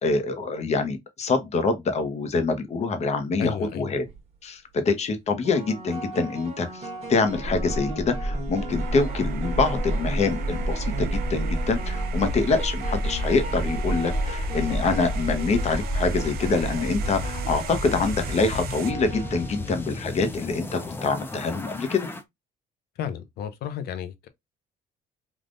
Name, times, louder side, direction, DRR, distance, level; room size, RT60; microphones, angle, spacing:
voice 1, 0.0-4.1 4.4-22.1, left 4 dB, 40° left, 0.8 m, -25 dB
voice 2, 3.4-3.9 23.0-24.3, left 8 dB, 70° left, 0.6 m, -33 dB
sound 1, 3.9-4.2 5.4-20.3, right 2 dB, 40° right, 1.3 m, -38 dB
sound 2, 7.3-22.2, equal, 15° left, 0.5 m, -30 dB
sound 3, 8.7-18.9, right 11 dB, 65° right, 0.5 m, -41 dB
3.5 x 2.4 x 2.5 m
cardioid pair, 110°, 17 cm